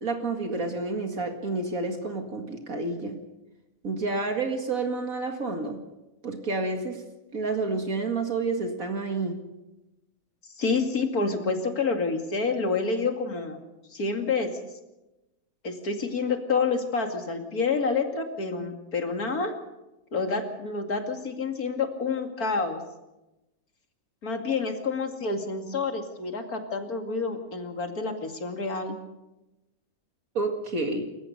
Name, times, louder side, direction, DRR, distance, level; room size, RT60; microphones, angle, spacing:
voice 1, 0.0-3.2 3.8-5.8 6.2-7.0 7.3-9.4 30.3-31.1, right 3 dB, 65° right, 4 dB, 2.5 m, -29 dB
voice 2, 10.6-13.6 13.9-14.5 15.6-19.5 20.1-22.8 24.2-29.0, left 4 dB, 75° left, 5 dB, 2.9 m, -28 dB
27.5 x 15.0 x 6.7 m, 0.98 s
omnidirectional pair, 1.6 m